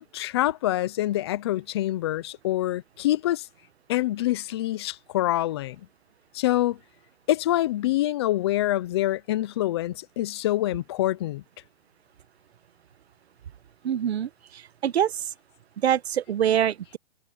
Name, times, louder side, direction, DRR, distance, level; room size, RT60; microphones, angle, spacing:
voice 1, 0.0-3.5 3.9-5.8 6.3-6.8 7.3-11.4, left 15 dB, 25° left, 0.5 m, -26 dB
voice 2, 13.8-15.3 15.8-17.0, right 10 dB, 90° right, 1.1 m, -25 dB
hypercardioid pair, 160°, 31 cm